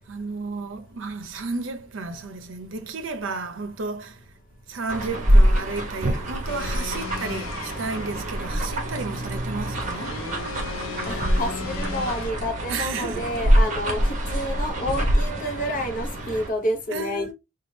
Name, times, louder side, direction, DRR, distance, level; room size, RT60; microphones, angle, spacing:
voice 1, 0.1-4.2 4.7-10.2 12.7-13.3 16.2-16.4 16.9-17.3, right 4 dB, 65° right, 0.6 m, -32 dB
sound 1, 4.9-16.5, equal, 35° right, 0.8 m, -24 dB
sound 2, 6.5-12.3, left 5 dB, 85° left, 0.6 m, -38 dB
voice 2, 11.1-17.3, left 1 dB, 40° left, 0.8 m, -29 dB
4.2 x 2.3 x 3.1 m
head